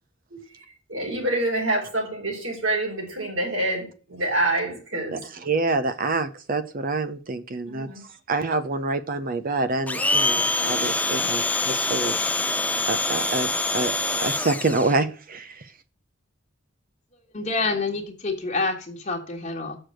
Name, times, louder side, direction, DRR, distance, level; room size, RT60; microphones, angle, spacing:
voice 1, 0.3-5.2 7.7-8.0, right 1 dB, 75° right, 4.1 m, -27 dB
voice 2, 5.1-7.9 8.3-12.5 12.9-15.7, right 3 dB, 45° right, 0.7 m, -27 dB
Domestic sounds home sounds, 9.9-15.0, left 3 dB, 10° left, 0.5 m, -25 dB
voice 3, 17.3-19.8, left 3 dB, 40° left, 1.5 m, -27 dB
6.6 x 6.6 x 7.5 m
head